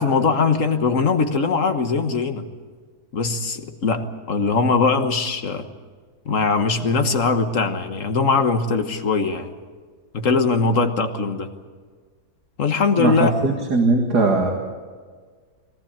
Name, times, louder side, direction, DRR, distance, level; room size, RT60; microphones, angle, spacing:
voice 1, 0.0-2.5 3.1-5.7 6.2-9.5 10.1-11.5 12.6-13.3, left 4 dB, 55° left, 7 dB, 1.6 m, -21 dB
voice 2, 13.0-14.5, right 3 dB, 80° right, 1 dB, 2.5 m, -19 dB
21.5 x 18.0 x 8.8 m, 1.6 s
omnidirectional pair, 1.7 m